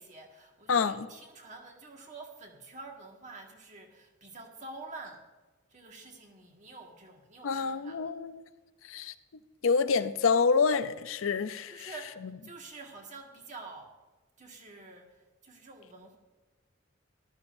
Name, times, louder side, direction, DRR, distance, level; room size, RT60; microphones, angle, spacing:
voice 1, 0.0-5.2 5.7-8.1 11.7-12.2 12.4-13.9 14.4-15.1 15.4-16.2, right 3 dB, 35° right, 1.7 m, -47 dB
voice 2, 0.7-1.1 7.4-8.4 8.9-9.1 9.6-11.9, left 5 dB, 75° left, 0.5 m, -27 dB
14.0 x 12.0 x 2.6 m
head